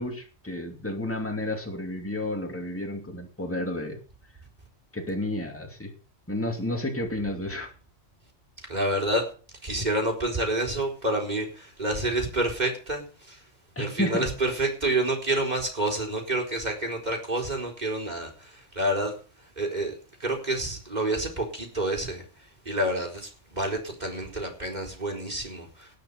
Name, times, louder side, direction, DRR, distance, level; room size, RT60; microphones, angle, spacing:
voice 1, 0.0-4.0 4.9-5.9 6.3-7.7 13.8-14.4, left 1 dB, 10° left, 2.6 m, -31 dB
voice 2, 8.7-9.2 9.6-13.4 13.8-19.1 19.6-22.2 22.6-25.9, right 1 dB, 35° right, 4.4 m, -28 dB
19.0 x 6.6 x 6.8 m
omnidirectional pair, 1.3 m